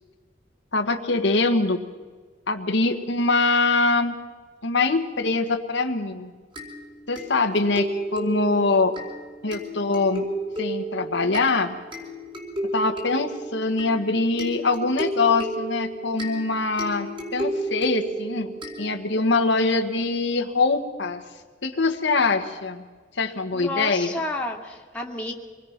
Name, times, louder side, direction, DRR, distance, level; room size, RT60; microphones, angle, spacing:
voice 1, 0.7-1.8 2.5-4.1 4.6-6.3 7.1-8.9 9.4-10.3 10.6-11.7 12.7-18.5 18.8-21.2 21.6-22.8 23.1-24.2, left 3 dB, 70° left, 4 dB, 1.5 m, -23 dB
sound 1, 6.6-19.3, right 1 dB, 25° right, 4.6 m, -33 dB
voice 2, 23.5-25.4, left 2 dB, 5° left, -1 dB, 2.4 m, -31 dB
26.0 x 20.5 x 6.0 m, 1.4 s
head